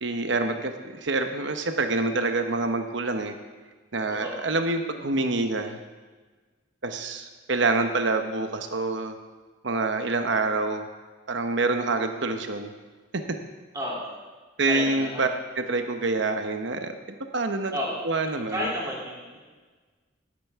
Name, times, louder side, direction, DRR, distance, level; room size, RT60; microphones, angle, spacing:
voice 1, 0.0-3.3 3.9-5.8 6.8-9.2 9.6-10.9 11.3-12.7 14.6-15.3 15.6-16.9 17.3-17.8 18.0-18.7, right 3 dB, 65° right, 6 dB, 0.9 m, -26 dB
voice 2, 13.7-14.1 14.7-15.3 17.7-18.0 18.5-19.4, equal, 20° right, -6 dB, 3.1 m, -31 dB
16.0 x 9.1 x 3.6 m, 1.4 s
head